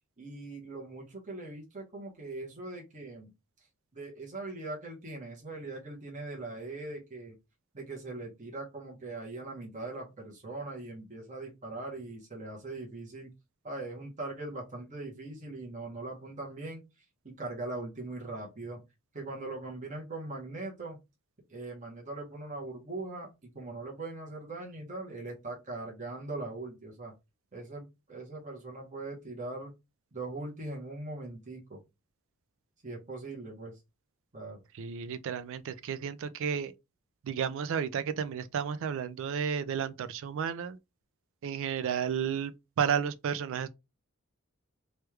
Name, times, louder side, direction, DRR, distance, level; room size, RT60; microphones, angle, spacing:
voice 1, 0.2-3.3 3.9-7.4 7.7-13.3 13.6-16.8 17.2-18.8 19.1-21.0 21.5-27.1 27.5-29.7 30.1-31.8 32.8-33.7 34.3-34.6, right 2 dB, 35° right, 0.9 m, -41 dB
voice 2, 34.7-36.7 37.2-40.8 41.4-43.7, right 7 dB, 65° right, 0.3 m, -32 dB
3.1 x 2.3 x 3.1 m
head